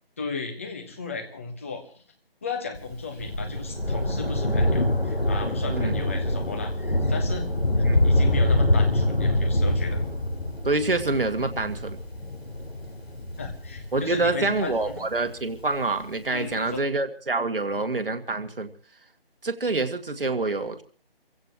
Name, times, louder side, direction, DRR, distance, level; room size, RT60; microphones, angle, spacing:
voice 1, 0.2-1.9 2.4-7.5 7.8-10.0 13.4-15.0 16.3-16.8, left 4 dB, 15° left, 3 dB, 1.2 m, -35 dB
Thunder, 2.7-15.6 16.5-16.6, left 1 dB, 85° left, 5.7 m, -25 dB
voice 2, 10.6-12.0 13.9-18.7 19.4-20.8, right 3 dB, 65° right, 8 dB, 2.0 m, -26 dB
28.5 x 16.0 x 3.0 m, 0.41 s
figure-of-eight pair, 165°, 30 cm